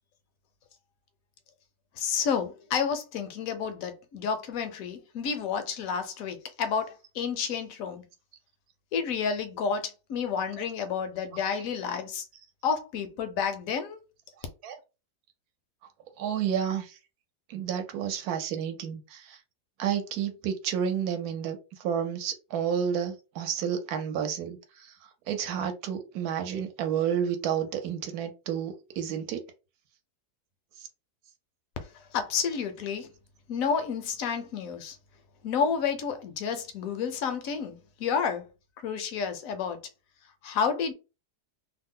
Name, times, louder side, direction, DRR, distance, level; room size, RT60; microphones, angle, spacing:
voice 1, 2.0-8.0 8.9-12.2 12.6-14.0 32.1-33.1 33.5-35.0 35.4-38.4 38.8-39.8 40.4-40.9, left 6 dB, 70° left, 0.9 m, -30 dB
voice 2, 16.2-16.9 17.5-19.4 19.8-24.6 25.3-29.4, right 8 dB, 75° right, 1.1 m, -30 dB
2.7 x 2.0 x 3.6 m
omnidirectional pair, 1.7 m